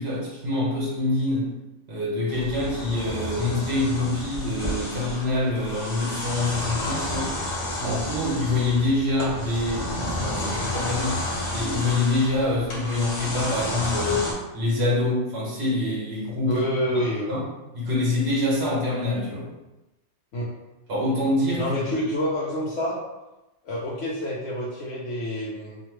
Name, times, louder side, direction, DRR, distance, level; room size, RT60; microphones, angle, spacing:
voice 1, 0.0-1.5 1.9-7.3 7.8-14.3 14.5-16.7 17.3-17.4 17.7-19.5 20.9-21.6, left 2 dB, 60° right, -5 dB, 1.3 m, -25 dB
sound 1, 2.3-14.3, left 1 dB, 35° left, 0.5 m, -31 dB
voice 2, 16.5-17.4 20.3-20.5 21.6-23.0 23.6-25.8, equal, 80° left, -6 dB, 0.9 m, -28 dB
2.9 x 2.4 x 3.0 m, 1.0 s
omnidirectional pair, 1.2 m